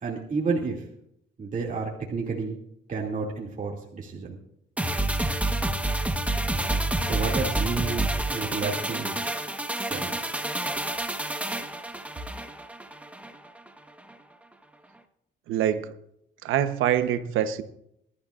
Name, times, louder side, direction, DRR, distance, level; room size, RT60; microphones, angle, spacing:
voice 1, 0.0-0.8 1.4-2.6 2.9-4.4 7.0-9.2 9.7-10.1, right 4 dB, 40° right, -3 dB, 2.5 m, -31 dB
sound 1, 4.8-13.3 13.7-13.8, right 1 dB, 5° right, 1.3 m, -28 dB
voice 2, 15.5-15.9 16.4-17.6, right 10 dB, 90° right, 10 dB, 1.0 m, -25 dB
22.5 x 12.5 x 2.5 m, 0.76 s
cardioid pair, 90°, 20 cm